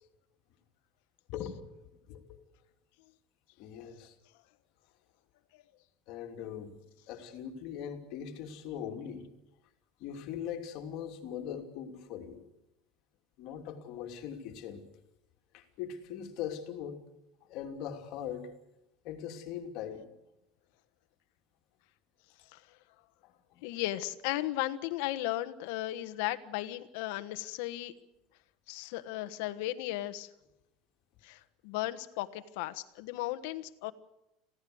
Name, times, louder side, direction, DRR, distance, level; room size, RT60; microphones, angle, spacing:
voice 1, 1.3-2.4 3.6-4.1 6.1-6.7 7.1-9.3 10.0-12.4 13.4-14.8 15.5-17.0 17.5-18.5 19.0-20.1 23.2-23.6, left 8 dB, 50° left, 4 dB, 3.0 m, -41 dB
voice 2, 23.6-27.9 28.7-30.3 31.2-33.9, left 15 dB, 65° left, 10 dB, 1.3 m, -35 dB
27.0 x 16.5 x 7.9 m, 0.90 s
cardioid pair, 160°, 0 cm